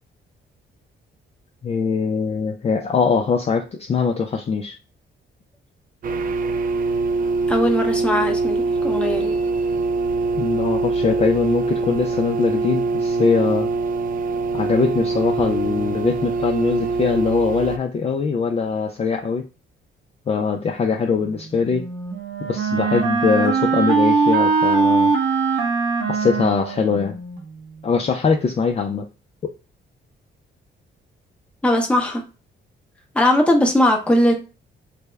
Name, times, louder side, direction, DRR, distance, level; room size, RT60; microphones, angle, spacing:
voice 1, 1.6-4.8 10.4-13.7 14.5-19.4 20.3-21.8 22.5-25.1 26.1-27.2 27.8-29.1, left 5 dB, 30° left, 0.4 m, -22 dB
sound 1, 6.0-17.8, right 3 dB, 45° right, 0.4 m, -23 dB
voice 2, 7.5-9.4 31.6-32.2 33.1-34.3, left 1 dB, 5° left, 0.8 m, -19 dB
Wind instrument woodwind instrument, 21.6-27.4, right 4 dB, 85° right, 0.9 m, -21 dB
3.4 x 2.1 x 3.3 m
cardioid pair, 105°, 20 cm